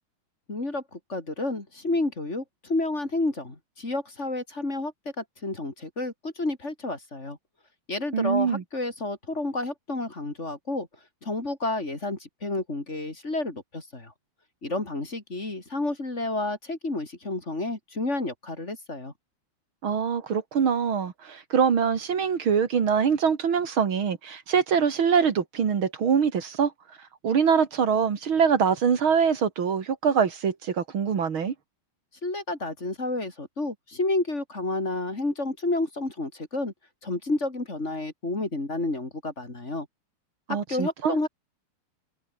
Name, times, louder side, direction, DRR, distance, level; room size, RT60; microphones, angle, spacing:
voice 1, 0.5-7.4 7.9-10.9 11.2-14.1 14.6-19.1 32.2-36.7 37.0-39.9 40.5-41.3, left 2 dB, 30° left, 3.9 m, -30 dB
voice 2, 8.1-8.6 19.8-26.7 27.2-31.5 40.5-41.2, right 6 dB, 65° right, 2.8 m, -24 dB
omnidirectional pair, 2.4 m